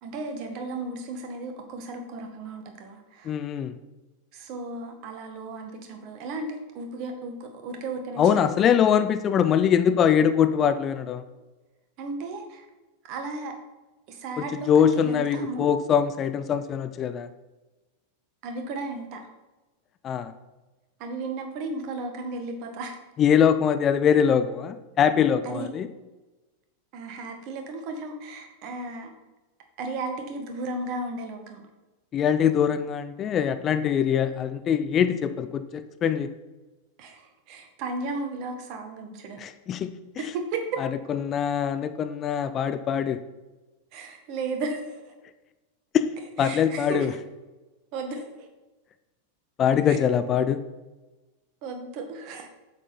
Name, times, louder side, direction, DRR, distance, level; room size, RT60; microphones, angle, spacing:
voice 1, 0.0-3.3 4.3-9.0 12.0-12.6 13.0-13.5 14.1-15.7 18.4-19.2 21.0-23.0 25.4-25.7 26.9-29.1 29.8-31.6 37.0-39.4 40.2-40.8 43.9-45.1 46.4-47.1 47.9-48.5 49.9-50.0 51.6-52.5, right 3 dB, 40° right, 5 dB, 1.6 m, -34 dB
voice 2, 3.2-3.8 8.2-11.2 14.7-17.3 20.0-20.3 23.2-25.9 32.1-36.3 39.4-39.9 40.8-43.2 45.9-46.0 46.4-47.1 49.6-50.6, left 8 dB, 30° left, 11 dB, 0.5 m, -23 dB
8.5 x 7.4 x 4.4 m, 1.1 s
figure-of-eight pair, 90°, 0 cm